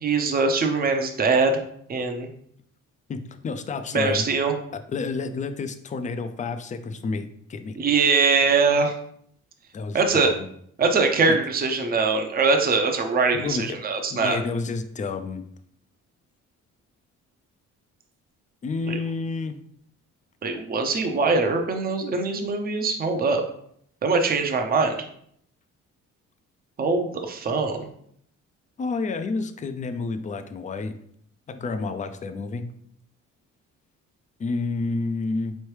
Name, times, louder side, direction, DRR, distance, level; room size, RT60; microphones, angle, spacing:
voice 1, 0.0-1.6 1.9-2.3 3.9-4.5 7.8-8.9 9.9-10.3 10.8-14.4 18.9-19.0 20.4-23.4 24.0-25.0 26.8-27.9, right 4 dB, 30° right, 4 dB, 0.6 m, -22 dB
voice 2, 3.1-4.2 4.9-7.8 9.7-10.5 11.3-11.4 13.3-13.8 14.1-15.4 18.6-19.6 28.8-30.9 31.5-32.6 34.4-35.6, left 4 dB, 25° left, 8 dB, 0.4 m, -30 dB
4.2 x 3.1 x 3.2 m, 0.67 s
cardioid pair, 90°, 30 cm